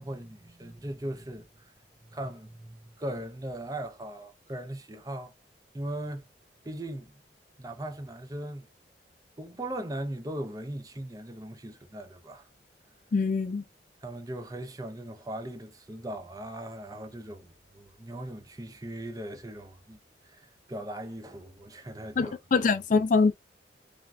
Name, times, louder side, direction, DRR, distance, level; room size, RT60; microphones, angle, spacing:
voice 1, 0.0-1.7 2.0-5.3 5.7-6.3 6.6-7.2 7.6-8.7 9.4-12.5 14.0-20.0 20.2-22.3, right 1 dB, 20° right, 0.5 m, -39 dB
voice 2, 13.1-13.6 22.2-23.3, left 4 dB, 45° left, 0.3 m, -24 dB
3.3 x 2.2 x 2.5 m
head